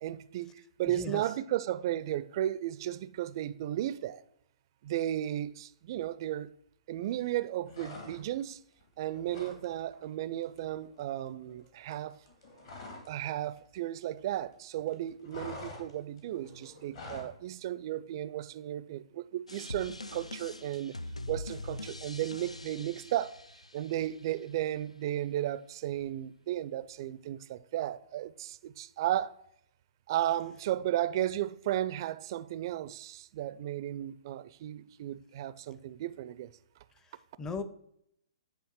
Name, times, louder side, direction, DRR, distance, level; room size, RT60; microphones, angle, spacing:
voice 1, 0.0-4.2 4.8-6.5 6.9-8.6 9.0-12.1 13.1-20.9 21.3-23.3 23.7-29.3 30.1-36.5, right 13 dB, 40° right, 0.4 m, -34 dB
voice 2, 0.8-1.3 37.0-37.6, left 4 dB, 15° left, 0.5 m, -39 dB
sound 1, 7.7-8.5 8.8-9.6 9.9-10.1 10.4-13.2 13.4-14.5 14.8-17.4, left 2 dB, 55° left, 2.2 m, -47 dB
sound 2, 19.5-24.4, left 2 dB, 90° left, 0.4 m, -43 dB
9.7 x 3.4 x 4.5 m
figure-of-eight pair, 120°, 3 cm